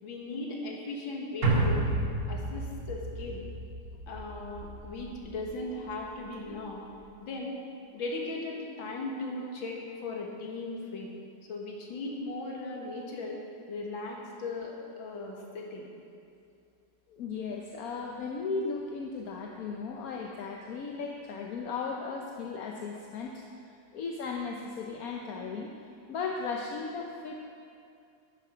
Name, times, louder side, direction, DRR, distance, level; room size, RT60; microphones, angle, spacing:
voice 1, 0.0-1.9 2.3-3.4 4.1-6.8 7.2-7.6 7.9-11.1 11.5-13.4 13.7-15.9, left 2 dB, 75° left, -1 dB, 2.3 m, -37 dB
sound 1, 1.4-5.9 6.2-6.3, right 2 dB, 50° right, 1.7 m, -31 dB
voice 2, 17.1-25.7 26.1-27.5, left 4 dB, 60° left, 1 dB, 1.0 m, -36 dB
10.0 x 9.6 x 5.6 m, 2.5 s
omnidirectional pair, 2.1 m